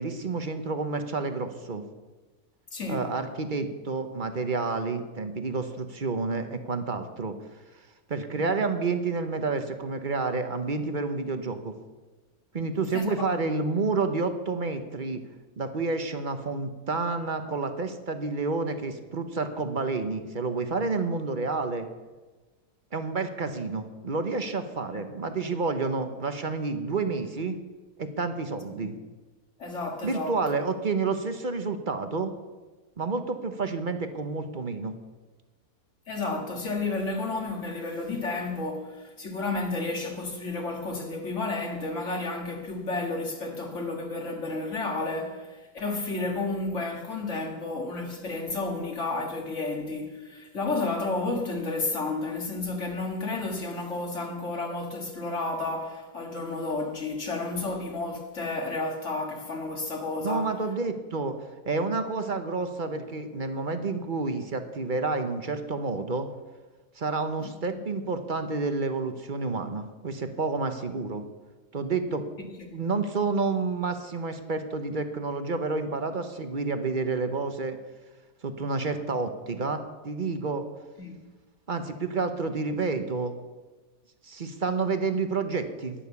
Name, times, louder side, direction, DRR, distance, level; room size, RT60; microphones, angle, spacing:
voice 1, 0.0-1.8 2.9-7.4 8.1-11.7 12.5-15.2 15.6-21.9 22.9-27.6 28.0-28.9 30.0-32.3 33.0-34.9 60.2-61.3 61.6-66.3 67.0-71.2 71.7-72.2 72.7-77.8 78.4-80.6 81.7-83.3 84.2-85.9, right 4 dB, 35° right, 0.9 m, -29 dB
voice 2, 2.7-3.1 8.4-8.5 12.9-13.3 24.9-25.0 28.8-28.9 29.6-30.4 36.1-60.5 67.4-67.8 72.7-72.8 81.0-81.2, left 3 dB, 45° left, 2.1 m, -32 dB
11.5 x 10.5 x 7.0 m
omnidirectional pair, 1.7 m